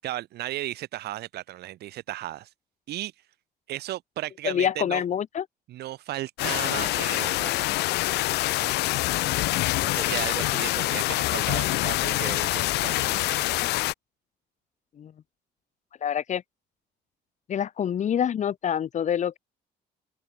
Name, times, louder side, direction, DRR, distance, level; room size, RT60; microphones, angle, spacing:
voice 1, 0.0-2.5 2.9-3.1 3.7-5.0 5.7-7.9 8.6-8.7 9.7-13.4, right 14 dB, 75° right, 6.7 m, -35 dB
voice 2, 4.4-5.4 13.6-13.7 15.0-15.1 16.0-16.4 17.5-19.4, left 9 dB, 45° left, 1.2 m, -26 dB
sound 1, 6.4-13.9, left 19 dB, 80° left, 0.7 m, -25 dB
cardioid pair, 110°, 17 cm